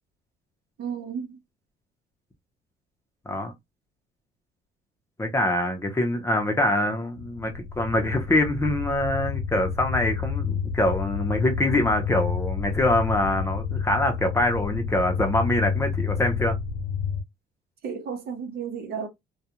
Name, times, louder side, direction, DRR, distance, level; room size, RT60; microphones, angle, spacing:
voice 1, 0.8-1.4 17.8-19.1, right 6 dB, 65° right, 0.9 m, -33 dB
voice 2, 5.2-16.5, left 1 dB, 15° left, 0.7 m, -24 dB
sound 1, 7.2-17.2, left 6 dB, 90° left, 0.7 m, -29 dB
2.3 x 2.3 x 2.9 m
cardioid pair, 110°, 17 cm